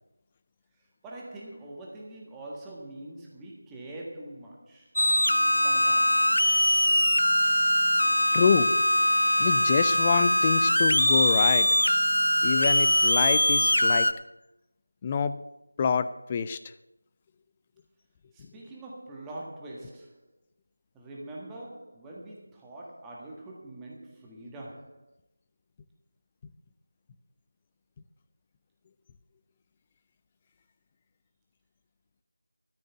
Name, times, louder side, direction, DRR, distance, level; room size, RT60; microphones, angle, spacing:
voice 1, 1.0-4.9 5.5-6.4 18.3-20.3 20.9-25.1, right 1 dB, 5° right, 1.5 m, -43 dB
sound 1, 5.0-14.1, left 1 dB, 85° left, 0.9 m, -22 dB
voice 2, 8.3-8.8 9.4-11.7 12.4-14.1 15.0-15.4 15.8-16.6, left 6 dB, 15° left, 0.5 m, -26 dB
13.5 x 6.3 x 8.8 m
figure-of-eight pair, 170°, 0 cm